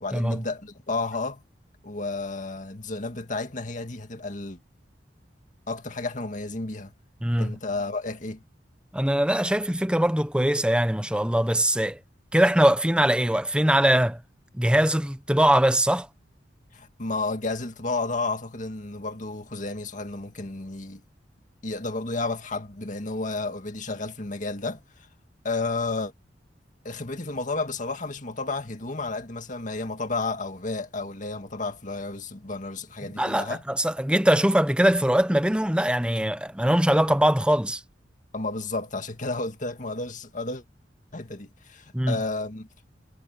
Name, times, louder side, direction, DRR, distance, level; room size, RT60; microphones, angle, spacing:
voice 1, 0.0-1.4 1.8-4.6 5.7-6.9 7.4-8.4 16.7-21.0 21.6-24.8 25.4-26.1 26.8-33.6 38.3-40.6 41.1-42.7, left 3 dB, 45° left, 2.0 m, -32 dB
voice 2, 7.2-7.6 8.9-12.0 12.3-14.2 14.5-16.1 33.2-37.8 41.9-42.2, right 1 dB, 5° right, 1.0 m, -22 dB
head